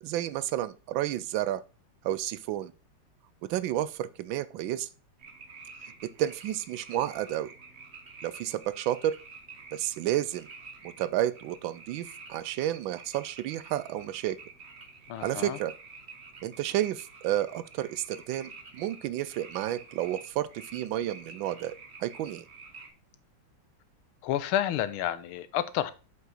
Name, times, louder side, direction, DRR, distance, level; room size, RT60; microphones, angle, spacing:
voice 1, 0.0-1.6 2.0-2.7 3.5-4.9 6.2-7.5 8.2-9.2 9.7-10.5 11.0-14.4 15.2-15.7 16.4-22.4, right 13 dB, 75° right, 1.2 m, -31 dB
sound 1, 5.2-22.9, right 4 dB, 35° right, 1.2 m, -49 dB
voice 2, 15.1-15.6 24.2-25.9, left 11 dB, 85° left, 1.5 m, -30 dB
7.8 x 5.5 x 3.8 m
omnidirectional pair, 2.3 m